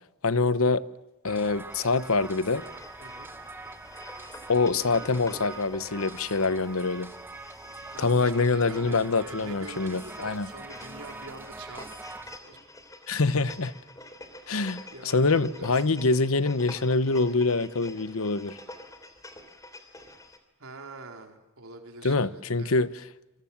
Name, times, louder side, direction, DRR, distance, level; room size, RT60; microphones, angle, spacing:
voice 1, 0.2-0.8 1.2-2.6 4.5-7.1 8.0-10.5 13.1-13.7 14.5-18.6 22.0-22.9, left 3 dB, 75° left, 1.0 m, -25 dB
sound 1, 1.3-12.4, right 2 dB, 10° right, 1.0 m, -43 dB
sound 2, 1.7-20.4, left 2 dB, 15° left, 3.2 m, -48 dB
voice 2, 3.0-3.3 7.9-12.6 14.9-15.8 20.6-22.8, right 2 dB, 75° right, 4.3 m, -44 dB
27.5 x 24.0 x 7.3 m
head